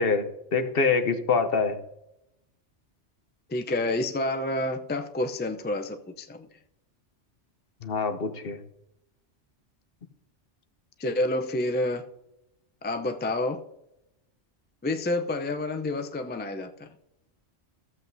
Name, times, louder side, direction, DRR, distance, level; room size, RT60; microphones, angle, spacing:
voice 1, 0.0-1.8 7.8-8.6, left 4 dB, 55° left, 9 dB, 1.0 m, -25 dB
voice 2, 3.5-6.5 11.0-12.0 12.8-13.6 14.8-16.9, left 2 dB, 15° left, 6 dB, 0.3 m, -29 dB
14.5 x 7.8 x 2.7 m, 0.85 s
omnidirectional pair, 1.2 m